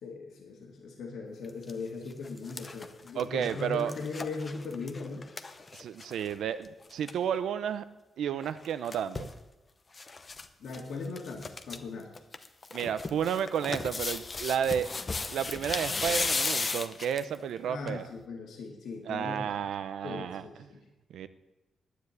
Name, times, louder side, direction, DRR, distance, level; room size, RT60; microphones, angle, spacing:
voice 1, 0.0-5.3 10.6-12.1 17.7-19.7 20.0-20.8, left 4 dB, 70° left, 0 dB, 2.0 m, -39 dB
sound 1, 1.4-1.7 2.1-6.3 6.6-6.7 6.9-7.2 8.4-9.4 9.9-10.5 10.7-10.8 11.2-11.8 12.2-17.4 17.9-18.0, left 3 dB, 25° left, 0.8 m, -35 dB
voice 2, 3.1-3.9 5.7-7.8 8.2-9.3 12.7-14.9 15.3-18.1 19.1-20.7 21.1-21.3, right 8 dB, 85° right, 12 dB, 0.8 m, -32 dB
10.0 x 9.4 x 9.7 m, 1.0 s
wide cardioid pair, 165°, 0 cm